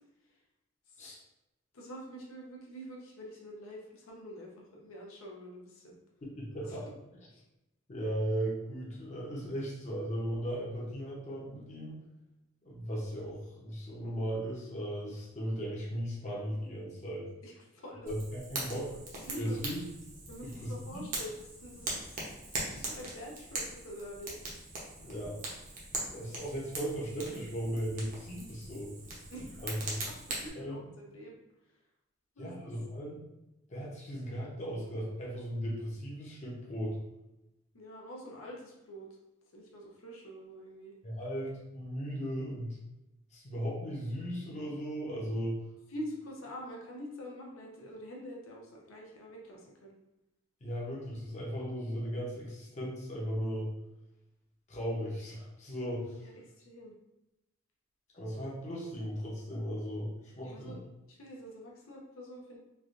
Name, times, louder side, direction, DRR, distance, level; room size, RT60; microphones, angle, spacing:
voice 1, 1.7-6.0 6.6-6.8 7.3-7.4 17.4-18.1 19.2-19.6 20.3-21.3 21.6-24.3 29.3-29.6 30.3-31.4 32.4-32.7 37.7-39.1 39.5-40.9 45.9-49.9 56.2-56.3 56.6-56.9 60.4-60.8 61.1-62.6, equal, 85° left, -2 dB, 0.6 m, -46 dB
voice 2, 6.4-6.9 7.9-12.0 12.6-17.3 18.0-19.0 19.4-19.8 20.4-21.0 25.0-25.4 26.1-28.9 29.6-30.0 30.5-30.9 32.4-33.2 33.7-37.0 41.0-42.8 43.3-45.6 50.6-53.7 54.7-56.3 58.1-60.8, equal, 35° left, -4 dB, 0.6 m, -37 dB
Fire, 18.1-30.5, right 2 dB, 40° right, 0.7 m, -41 dB
3.2 x 2.4 x 2.5 m, 0.92 s
head